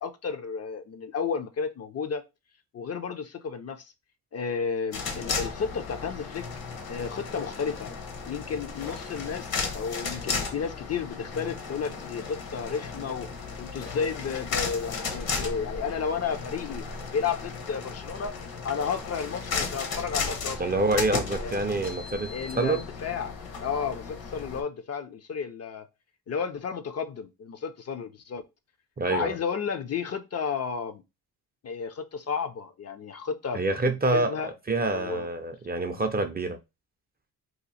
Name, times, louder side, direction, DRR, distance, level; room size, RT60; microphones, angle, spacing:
voice 1, 0.0-2.2 2.7-3.9 4.3-6.4 6.9-7.9 8.3-13.3 13.6-16.8 17.1-20.6 21.3-21.6 22.3-23.4 23.6-25.9 26.3-28.4 29.1-31.0 31.6-34.5 34.9-35.3, left 6 dB, 40° left, 0.5 m, -32 dB
sound 1, 4.9-24.6, left 5 dB, 70° left, 1.0 m, -35 dB
voice 2, 20.6-22.8 29.0-29.3 33.5-34.3 34.7-36.6, right 2 dB, 25° right, 0.5 m, -26 dB
2.8 x 2.4 x 4.0 m
cardioid pair, 95°, 38 cm